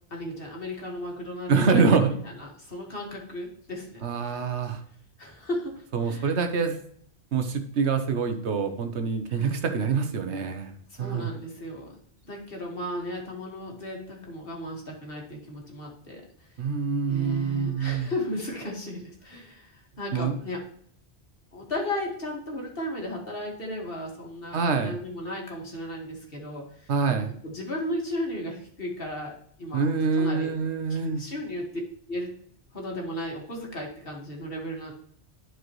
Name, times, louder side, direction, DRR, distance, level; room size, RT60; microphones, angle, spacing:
voice 1, 0.1-4.5 5.2-6.4 9.3-9.6 10.9-11.9 12.2-16.6 17.1-20.6 21.5-26.9 27.4-29.8 30.1-30.5 30.9-31.7 32.1-32.3 32.7-34.9, left 1 dB, 55° left, -1 dB, 2.0 m, -35 dB
voice 2, 1.5-2.1 4.0-4.8 5.9-6.8 7.3-10.7 11.0-11.3 16.6-18.1 20.1-20.4 24.5-25.0 26.9-27.3 29.7-31.2, right 5 dB, 75° right, 7 dB, 1.2 m, -25 dB
11.5 x 4.7 x 3.1 m, 0.62 s
omnidirectional pair, 1.2 m